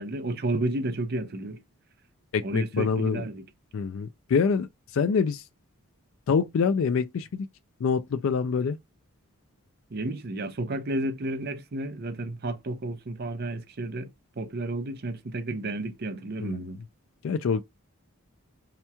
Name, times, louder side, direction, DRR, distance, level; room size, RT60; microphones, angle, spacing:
voice 1, 0.0-1.6 2.4-3.4 9.9-14.1 14.4-16.8, right 2 dB, 45° right, 0.5 m, -32 dB
voice 2, 2.3-3.3 3.7-5.5 6.3-7.5 7.8-8.8 16.4-16.6 17.2-17.6, left 5 dB, 65° left, 0.3 m, -26 dB
4.3 x 2.9 x 2.2 m
head